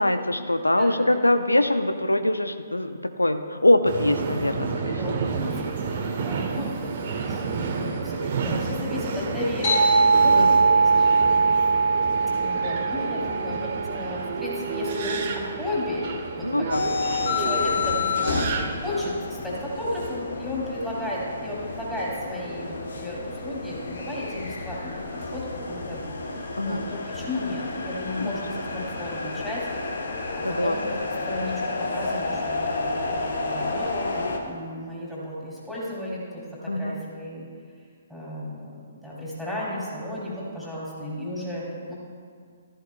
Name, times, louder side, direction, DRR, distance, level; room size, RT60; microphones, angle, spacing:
voice 1, 0.0-5.2 10.4-10.6 16.4-16.8 26.6-26.8 28.2-28.4 30.4-30.8 36.7-37.0, left 1 dB, 85° left, 9 dB, 0.6 m, -23 dB
voice 2, 0.7-1.1 4.6-4.7 5.0-5.9 6.2-11.4 12.3-16.0 16.3-16.7 17.4-18.3 18.8-25.0 25.3-26.0 26.6-29.7 30.0-30.1 30.5-30.8 31.3-33.1 33.4-36.2 36.6-37.5 38.1-41.9, left 1 dB, ahead, -8 dB, 3.2 m, -34 dB
Subway metro underground, 3.8-19.1, right 4 dB, 45° right, 1.1 m, -30 dB
sound 1, 9.6-14.6, right 4 dB, 35° left, 3.2 m, -21 dB
sound 2, 16.7-34.4, left 3 dB, 60° left, 1.2 m, -30 dB
14.0 x 13.5 x 2.3 m, 2.1 s
figure-of-eight pair, 125°, 0 cm